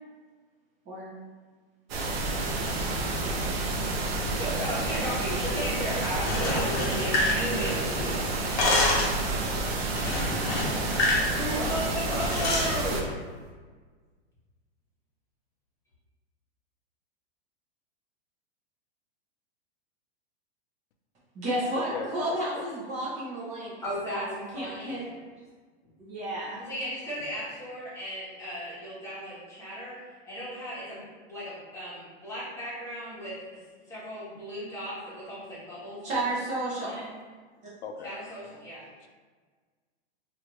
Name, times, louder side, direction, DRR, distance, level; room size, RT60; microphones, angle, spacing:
sound 1, 1.9-13.0, right 2 dB, 65° right, 0.7 m, -30 dB
voice 1, 4.3-9.1 11.2-13.1 23.8-25.2 26.6-33.6 33.9-36.1 36.8-37.1 38.0-38.9, equal, 10° left, -10 dB, 1.2 m, -35 dB
sound 2, 6.2-8.0 8.3-9.2 10.0-11.3 11.5-11.7 12.2-12.7, left 2 dB, 40° left, 0.8 m, -27 dB
voice 2, 21.3-23.7 24.0-25.0 26.0-26.6 36.0-37.1, right 1 dB, 20° right, -6 dB, 0.7 m, -32 dB
voice 3, 21.9-22.6 37.8-38.1, left 5 dB, 90° left, 4 dB, 0.6 m, -38 dB
3.1 x 2.6 x 2.9 m, 1.5 s
supercardioid pair, 150°, 33 cm